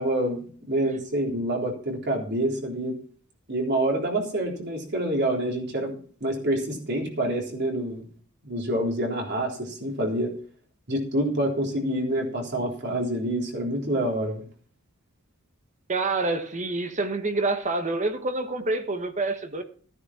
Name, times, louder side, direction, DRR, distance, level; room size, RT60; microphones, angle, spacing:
voice 1, 0.0-3.0 3.5-6.0 6.2-8.1 8.4-10.3 10.9-14.5, right 1 dB, 50° right, 3.7 m, -27 dB
voice 2, 15.9-19.6, right 2 dB, 35° right, 1.2 m, -27 dB
14.5 x 9.6 x 4.3 m
head